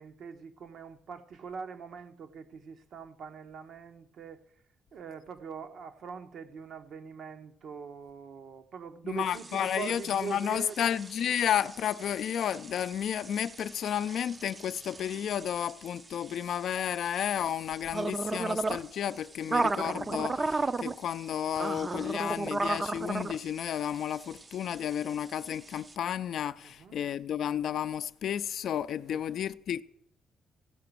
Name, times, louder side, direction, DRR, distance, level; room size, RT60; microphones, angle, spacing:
voice 1, 0.0-4.5 4.9-11.0 26.6-27.0 29.1-29.2, right 6 dB, 65° right, 0.9 m, -43 dB
voice 2, 9.0-29.8, left 9 dB, 70° left, 0.4 m, -32 dB
sound 1, 9.3-25.9, right 3 dB, 30° right, 0.5 m, -36 dB
15.5 x 5.9 x 6.8 m
cardioid pair, 90°, 0 cm